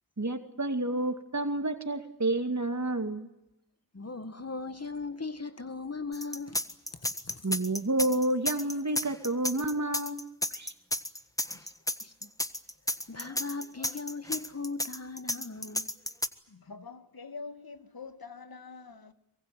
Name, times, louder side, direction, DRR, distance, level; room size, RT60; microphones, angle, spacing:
voice 1, 0.2-3.3 7.4-10.2 10.5-10.7, right 2 dB, 45° right, 2.4 m, -30 dB
voice 2, 3.9-6.6 7.0-7.4 11.5-11.7 12.0-12.3 13.1-15.9, left 4 dB, 40° left, 1.6 m, -38 dB
sound 1, 6.1-16.3, left 1 dB, 10° left, 1.6 m, -32 dB
voice 3, 16.5-19.1, left 4 dB, 65° left, 1.8 m, -45 dB
24.5 x 23.0 x 9.1 m
cardioid pair, 45°, 38 cm